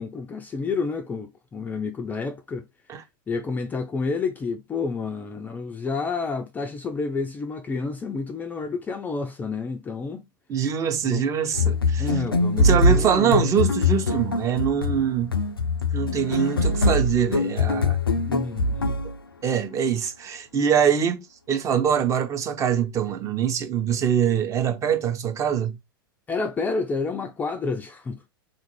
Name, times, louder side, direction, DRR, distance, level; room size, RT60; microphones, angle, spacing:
voice 1, 0.0-2.6 3.3-10.3 11.0-11.3 12.0-13.4 18.2-19.0 26.3-28.2, left 4 dB, 15° left, 0.4 m, -29 dB
voice 2, 10.5-12.1 12.6-15.4 15.9-18.0 19.4-25.8, right 8 dB, 25° right, 0.7 m, -24 dB
sound 1, 11.5-19.2, left 2 dB, 85° left, 0.4 m, -23 dB
3.8 x 2.5 x 2.9 m
figure-of-eight pair, 90°, 12 cm